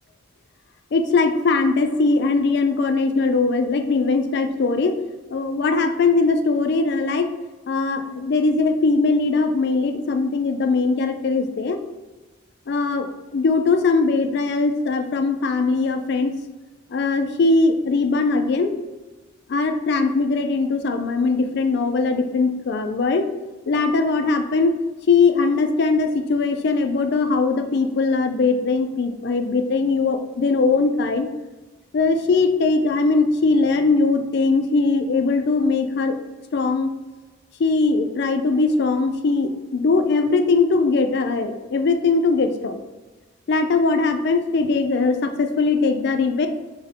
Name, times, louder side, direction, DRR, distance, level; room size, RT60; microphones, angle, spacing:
voice 1, 0.9-5.0 5.3-7.3 7.7-11.8 12.7-13.1 13.3-16.3 16.9-18.7 19.5-23.3 23.7-24.7 25.1-31.3 31.9-36.1 36.5-36.9 37.6-42.8 43.5-46.5, left 3 dB, 55° left, 7 dB, 0.4 m, -20 dB
5.3 x 2.1 x 3.6 m, 1.2 s
head